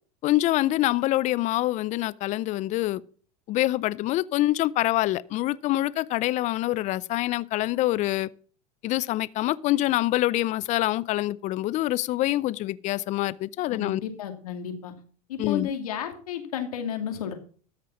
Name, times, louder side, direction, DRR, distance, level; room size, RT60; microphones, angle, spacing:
voice 1, 0.2-3.0 3.5-8.3 8.8-14.0 15.4-15.7, left 16 dB, 40° left, 0.5 m, -25 dB
voice 2, 13.7-14.9 15.3-17.3, left 8 dB, 90° left, 2.5 m, -32 dB
13.0 x 6.7 x 5.8 m
supercardioid pair, 120°, 18 cm